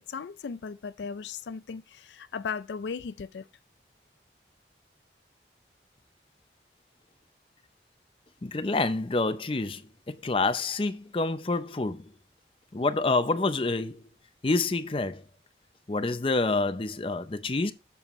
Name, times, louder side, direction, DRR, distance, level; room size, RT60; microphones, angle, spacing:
voice 1, 0.1-3.5, left 5 dB, 80° left, 0.4 m, -36 dB
voice 2, 8.4-9.8 10.1-12.1 12.7-14.1 14.4-15.2 15.9-17.7, left 3 dB, 30° left, 0.5 m, -27 dB
7.2 x 7.1 x 3.0 m
head